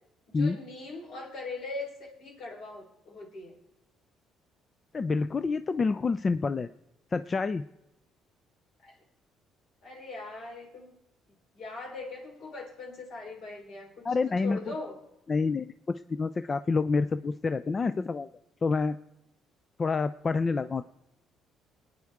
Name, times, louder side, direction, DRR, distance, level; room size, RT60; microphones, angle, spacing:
voice 1, 0.3-3.6 8.8-8.9 9.8-11.0 11.5-15.0 15.5-15.6, left 3 dB, 60° left, 0 dB, 3.9 m, -41 dB
voice 2, 4.9-6.7 7.1-7.6 14.0-14.7 15.3-18.3 18.6-19.0 19.8-20.9, left 4 dB, 25° left, 13 dB, 0.3 m, -28 dB
24.0 x 9.4 x 3.6 m, 0.90 s
cardioid pair, 130°, 0 cm